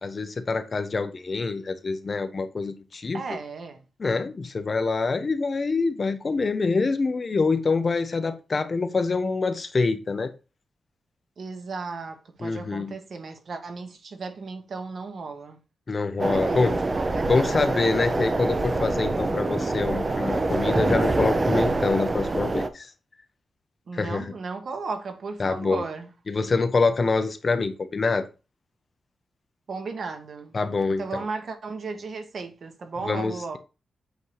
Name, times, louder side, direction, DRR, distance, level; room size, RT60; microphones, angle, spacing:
voice 1, 0.0-3.2 4.0-10.3 12.4-13.0 15.9-16.7 17.3-22.9 23.9-24.3 25.4-25.8 26.3-28.3 30.5-31.2 33.0-33.6, left 4 dB, 35° left, 0.7 m, -25 dB
voice 2, 3.1-3.8 11.4-15.6 16.2-17.8 23.9-26.1 29.7-30.6 31.0-33.6, right 4 dB, 55° right, 1.1 m, -35 dB
sound 1, 16.2-22.7, right 2 dB, 25° right, 0.6 m, -25 dB
8.1 x 2.8 x 4.7 m
wide cardioid pair, 140°, 0 cm